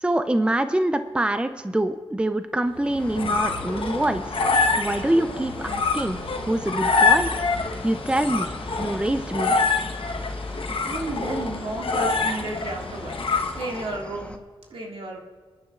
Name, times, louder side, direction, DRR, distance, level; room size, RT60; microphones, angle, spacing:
voice 1, 0.0-4.5 4.8-6.2 6.5-7.3 7.8-8.5 8.8-9.5, right 1 dB, 10° right, 9 dB, 0.5 m, -25 dB
sound 1, 2.8-14.0, left 4 dB, 70° left, 1.1 m, -26 dB
Cricket, 3.0-14.4, left 1 dB, 10° left, 1.1 m, -42 dB
voice 2, 10.9-13.1 13.6-14.3 14.7-15.2, right 2 dB, 70° right, -1 dB, 2.2 m, -32 dB
27.0 x 9.6 x 2.5 m, 1.4 s
cardioid pair, 60°, 10 cm